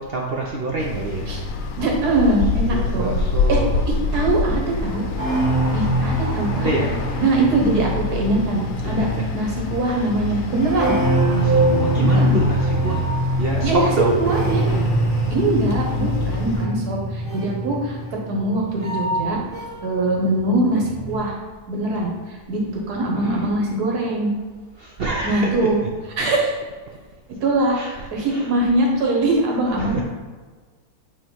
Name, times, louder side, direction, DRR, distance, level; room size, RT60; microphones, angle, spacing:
voice 1, 0.0-1.3 2.6-3.8 4.2-4.3 6.5-7.0 8.8-9.5 9.9-10.0 11.3-13.0 13.4-14.2 17.2-17.3 23.1-23.4 24.8-25.7 27.7-28.5 29.7-30.0, right 3 dB, 55° right, -1 dB, 0.7 m, -27 dB
sound 1, 0.8-16.7, left 4 dB, 65° left, 1.0 m, -27 dB
voice 2, 1.8-3.2 3.5-3.6 3.9-5.1 5.7-6.7 7.2-9.1 9.3-11.0 12.0-12.4 13.6-13.9 14.2-14.7 15.3-19.4 19.8-21.4 21.7-24.3 25.2-25.8 26.2-26.5 27.4-30.0, right 2 dB, 80° right, -1 dB, 1.8 m, -22 dB
sound 2, 4.2-20.0 20.3-21.1, right 1 dB, 35° right, 2.0 m, -24 dB
7.8 x 3.1 x 4.5 m, 1.4 s
omnidirectional pair, 1.7 m